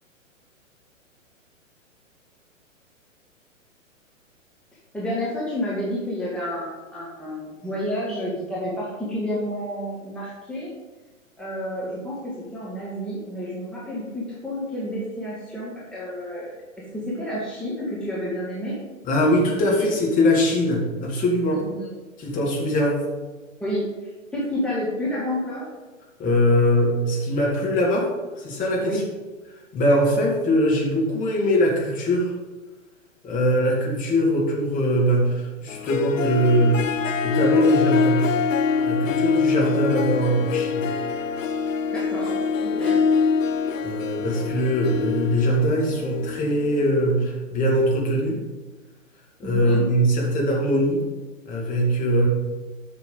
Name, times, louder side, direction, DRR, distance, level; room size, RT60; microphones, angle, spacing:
voice 1, 4.9-10.7 11.4-16.5 16.9-18.8 21.6-21.9 23.6-25.7 28.8-29.0 41.9-43.1 44.3-44.5 49.4-49.9, equal, ahead, -7 dB, 1.5 m, -30 dB
voice 2, 19.0-21.6 22.2-23.0 26.2-28.1 28.4-29.0 29.7-32.3 33.2-37.0 37.2-38.3 38.8-40.9 43.8-48.4 49.4-51.0 51.5-52.3, equal, 20° left, -2 dB, 1.9 m, -22 dB
Harp, 35.7-46.9, left 5 dB, 70° left, 0.6 m, -24 dB
8.4 x 5.9 x 5.3 m, 1.2 s
figure-of-eight pair, 115°, 40 cm